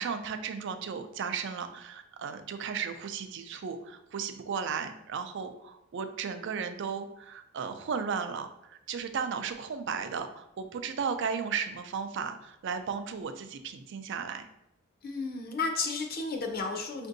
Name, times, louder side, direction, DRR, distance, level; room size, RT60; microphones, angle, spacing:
voice 1, 0.0-14.5, right 6 dB, 60° right, 9 dB, 0.4 m, -35 dB
voice 2, 15.0-17.1, left 4 dB, 45° left, 3 dB, 0.5 m, -33 dB
5.2 x 2.6 x 2.6 m, 0.82 s
head